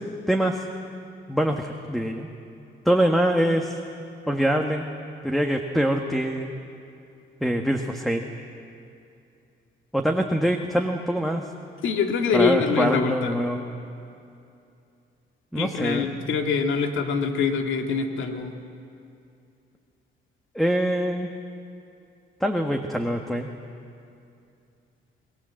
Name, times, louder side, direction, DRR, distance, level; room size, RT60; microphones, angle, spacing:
voice 1, 0.3-0.6 1.3-2.3 2.8-3.8 4.3-4.9 5.2-6.6 7.4-8.3 9.9-11.4 12.3-13.6 15.5-16.1 20.5-21.3 22.4-23.5, equal, ahead, 3 dB, 1.5 m, -24 dB
voice 2, 11.8-13.4 15.6-18.6, left 5 dB, 75° left, 4 dB, 2.3 m, -24 dB
26.5 x 20.0 x 7.7 m, 2.6 s
cardioid pair, 90°, 20 cm